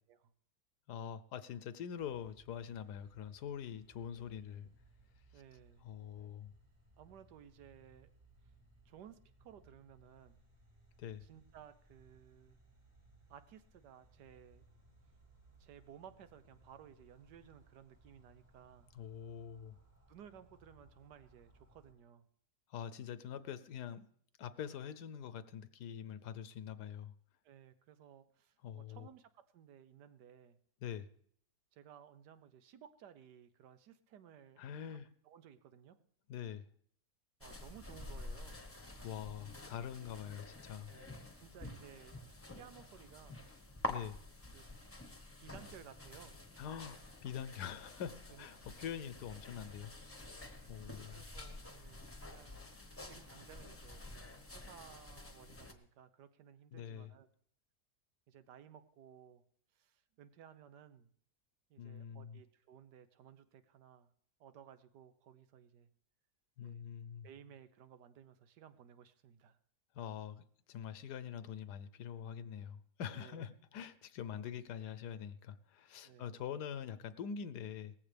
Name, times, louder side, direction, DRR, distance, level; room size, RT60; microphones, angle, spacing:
voice 1, 0.9-4.7 5.8-6.5 11.0-11.2 18.9-19.8 22.7-24.1 24.4-27.1 28.6-29.1 30.8-31.1 34.6-35.1 36.3-36.7 39.0-40.9 43.9-44.2 46.6-49.9 50.7-51.2 56.7-57.1 61.8-62.4 66.6-67.3 69.9-77.9, left 8 dB, 80° left, 14 dB, 1.3 m, -44 dB
sound 1, 2.0-21.9, right 2 dB, 50° right, 3.5 m, -66 dB
voice 2, 5.3-5.9 7.0-8.1 8.8-10.4 11.2-12.6 13.3-14.7 15.6-18.9 20.1-22.3 27.4-30.6 31.7-36.0 37.4-38.6 40.9-42.2 42.5-43.4 44.5-44.7 45.4-46.4 48.3-48.6 50.9-52.5 53.0-57.3 58.3-59.4 59.7-61.1 61.7-64.1 64.4-65.9 66.6-66.8 67.2-69.6 73.1-73.4 76.0-76.4, right 9 dB, 85° right, 12 dB, 1.4 m, -58 dB
sound 2, 37.4-55.7, left 1 dB, 10° left, 1.0 m, -49 dB
18.0 x 14.5 x 3.4 m, 0.62 s
omnidirectional pair, 1.7 m